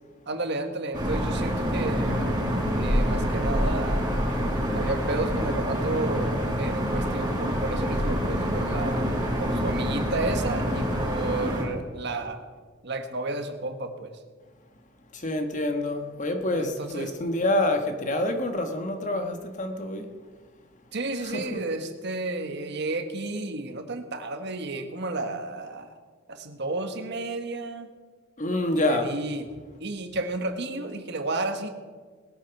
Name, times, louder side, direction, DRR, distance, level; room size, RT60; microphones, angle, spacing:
voice 1, 0.3-2.3 2.8-4.0 4.7-9.1 9.4-12.4 12.8-14.1 16.5-17.1 20.9-26.0 26.3-27.9 28.7-29.5 29.8-31.7, right 2 dB, 60° right, 1.4 m, -32 dB
sound 1, 0.9-11.6, equal, 20° right, 4.8 m, -26 dB
voice 2, 15.1-20.1 21.2-21.6 28.4-29.1, left 1 dB, 40° left, 1.4 m, -27 dB
19.5 x 8.7 x 5.9 m
head